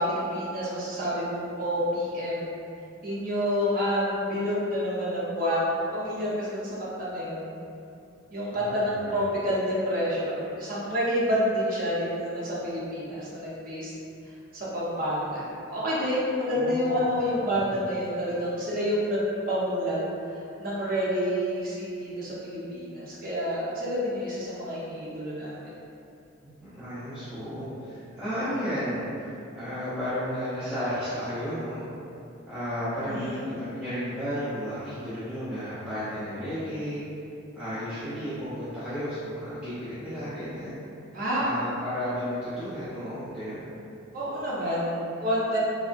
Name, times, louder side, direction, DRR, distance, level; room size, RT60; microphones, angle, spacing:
voice 1, 0.0-2.5 3.0-5.6 5.9-7.6 8.3-13.9 14.5-20.0 20.3-25.5 33.1-33.4 41.1-41.5 44.1-45.6, equal, 45° right, -8 dB, 0.7 m, -28 dB
voice 2, 8.5-9.2 16.6-17.1 17.4-17.8 26.4-31.9 32.5-37.0 37.5-40.8 41.4-43.7, equal, 5° right, -16 dB, 0.7 m, -33 dB
3.6 x 2.1 x 2.5 m, 2.7 s
head